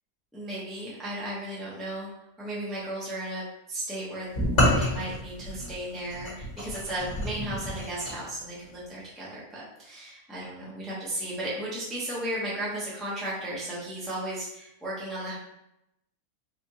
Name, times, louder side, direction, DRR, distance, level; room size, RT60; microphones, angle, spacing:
voice 1, 0.3-2.1 2.4-15.3, right 1 dB, ahead, -7 dB, 0.7 m, -35 dB
sound 1, 4.3-8.2, left 1 dB, 45° left, 1.5 m, -28 dB
4.2 x 2.5 x 2.9 m, 0.85 s
omnidirectional pair, 1.6 m